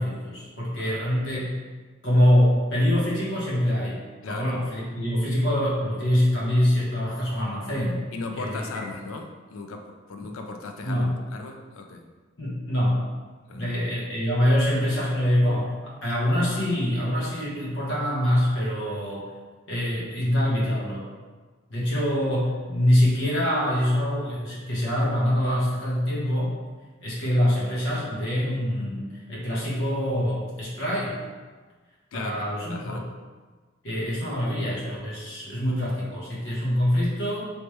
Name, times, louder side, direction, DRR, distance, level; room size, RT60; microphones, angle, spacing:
voice 1, 0.0-1.5 2.0-8.1 8.4-8.6 10.8-11.2 12.4-13.1 13.5-19.3 19.7-21.1 21.7-26.6 27.0-31.2 32.1-33.0 33.8-37.5, equal, 65° left, -6 dB, 1.1 m, -24 dB
voice 2, 4.2-4.5 8.1-12.1 13.5-13.8 32.1-33.1, left 3 dB, 85° left, 4 dB, 0.4 m, -37 dB
3.1 x 3.1 x 3.0 m, 1.4 s
head